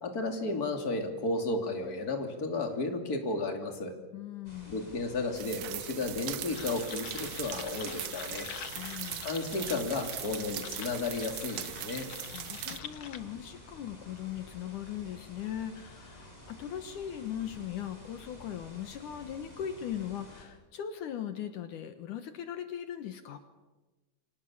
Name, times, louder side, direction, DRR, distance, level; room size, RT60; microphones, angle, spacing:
voice 1, 0.0-3.9 4.7-8.5 9.2-12.1, left 3 dB, 30° left, 4 dB, 3.1 m, -33 dB
voice 2, 4.1-4.9 8.6-9.3 12.3-23.4, left 10 dB, 70° left, 8 dB, 2.7 m, -39 dB
sound 1, 4.4-20.4, left 1 dB, 10° left, 6.3 m, -51 dB
sound 2, 5.3-12.8, right 13 dB, 70° right, 2.1 m, -40 dB
sound 3, 6.5-13.2, left 8 dB, 55° left, 1.6 m, -45 dB
29.0 x 25.0 x 7.3 m, 1.2 s
omnidirectional pair, 3.8 m